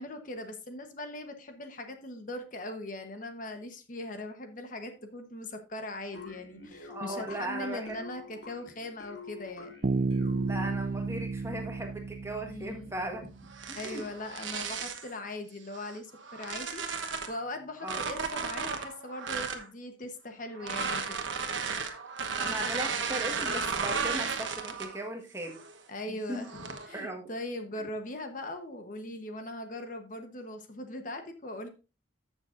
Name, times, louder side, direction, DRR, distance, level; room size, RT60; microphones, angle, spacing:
voice 1, 0.0-9.7 12.4-12.9 13.7-21.2 25.9-31.7, left 1 dB, 45° left, 6 dB, 1.1 m, -40 dB
sound 1, 6.2-10.9, left 5 dB, 75° left, 2.5 m, -47 dB
voice 2, 6.6-8.0 10.5-13.3 13.7-14.1 17.8-18.0 22.4-25.6 26.1-26.5 26.9-27.3, right 1 dB, 15° right, 3 dB, 1.5 m, -38 dB
Bass guitar, 9.8-13.6, right 3 dB, 45° right, 0.5 m, -32 dB
sound 2, 13.5-15.1 15.7-17.4 17.8-19.7 20.6-25.0 25.4-25.8 26.4-26.9, right 5 dB, 85° right, 1.1 m, -34 dB
14.0 x 6.4 x 2.6 m, 0.30 s
head